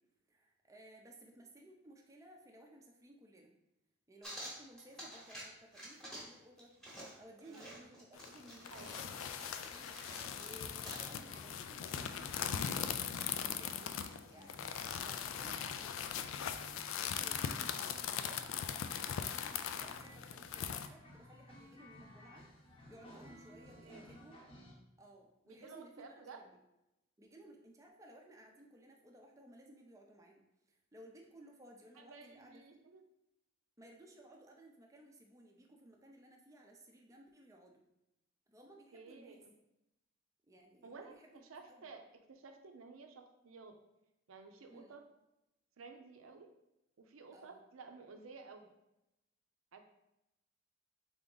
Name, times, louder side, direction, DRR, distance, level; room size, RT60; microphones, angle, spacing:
voice 1, 0.3-3.5 4.1-10.0 10.4-14.0 14.3-16.4 17.0-22.5 22.9-24.4 25.0-26.5 27.2-30.4 30.7-32.8 33.8-37.8 38.5-39.4 40.5-41.9 44.7-44.9 47.3-47.6, right 1 dB, 15° right, 1 dB, 0.5 m, -59 dB
sound 1, 4.2-5.5 5.7-6.3 6.6-11.1, right 1 dB, ahead, 1.0 m, -50 dB
voice 2, 7.4-7.9 8.7-9.0 23.8-24.1 25.5-26.4 31.9-33.0 38.9-39.5 40.8-41.2 41.4-42.0 42.3-43.7 44.3-45.0 45.8-46.5 47.0-48.7 49.7-49.8, right 4 dB, 80° right, 5 dB, 0.5 m, -53 dB
sound 2, 8.2-20.9, left 8 dB, 75° left, 0.3 m, -40 dB
sound 3, 10.5-24.7, left 1 dB, 25° left, 0.8 m, -57 dB
3.8 x 3.5 x 3.8 m, 0.90 s
head